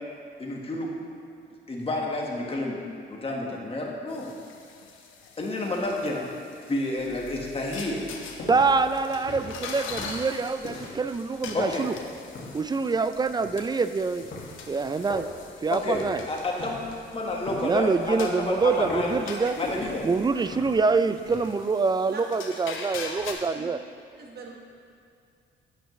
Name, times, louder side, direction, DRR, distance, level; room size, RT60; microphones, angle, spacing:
voice 1, 0.4-0.9 1.7-2.8 3.1-4.3 5.4-6.3 6.7-8.0 11.5-11.9 15.7-16.8 17.1-19.2 19.6-20.1, left 2 dB, 30° left, -1 dB, 1.6 m, -30 dB
sound 1, 4.1-23.3, left 5 dB, 80° left, 0.9 m, -43 dB
sound 2, 7.0-21.5, left 2 dB, 60° left, 2.0 m, -42 dB
voice 2, 8.5-12.0 12.5-14.2 14.7-15.3 15.6-16.2 17.6-19.5 20.0-23.8, right 4 dB, 20° right, 11 dB, 0.3 m, -25 dB
voice 3, 24.2-24.5, right 5 dB, 55° right, 0 dB, 1.5 m, -41 dB
10.0 x 8.0 x 3.2 m, 2.4 s
cardioid pair, 90°, 20 cm